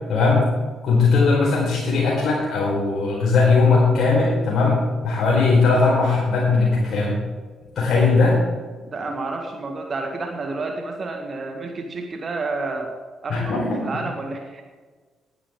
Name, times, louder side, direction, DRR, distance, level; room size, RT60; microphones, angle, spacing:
voice 1, 0.1-0.4 0.8-4.8 5.0-7.2 7.8-8.4 13.3-13.8, left 4 dB, 50° left, -5 dB, 4.7 m, -19 dB
voice 2, 8.9-12.9 13.2-14.8, right 3 dB, 40° right, 4 dB, 1.7 m, -30 dB
19.5 x 11.0 x 3.8 m, 1.4 s
figure-of-eight pair, 40°, 0 cm